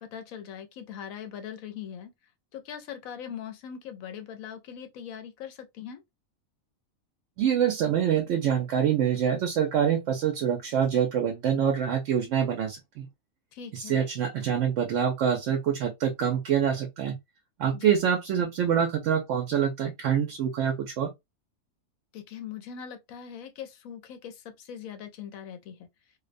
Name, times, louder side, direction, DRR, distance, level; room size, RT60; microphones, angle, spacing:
voice 1, 0.0-2.1 2.5-6.0 13.5-14.0 17.7-18.0 22.1-25.9, left 8 dB, 80° left, 1.0 m, -41 dB
voice 2, 7.4-13.1 13.7-17.2 17.6-21.1, right 8 dB, 70° right, 0.8 m, -25 dB
2.5 x 2.1 x 2.4 m
omnidirectional pair, 1.4 m